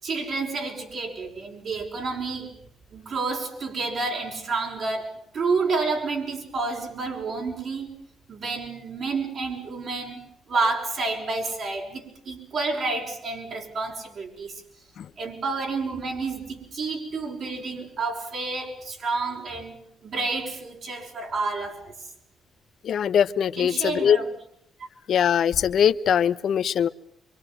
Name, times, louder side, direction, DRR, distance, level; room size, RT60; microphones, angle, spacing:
voice 1, 0.0-2.5 2.9-7.9 8.3-10.2 10.5-14.6 15.2-21.9 23.6-24.3, right 3 dB, 60° right, -1 dB, 5.8 m, -29 dB
voice 2, 22.8-24.2 25.1-26.9, left 8 dB, 65° left, 12 dB, 1.0 m, -21 dB
26.0 x 24.0 x 7.6 m, 0.69 s
cardioid pair, 90°, 0 cm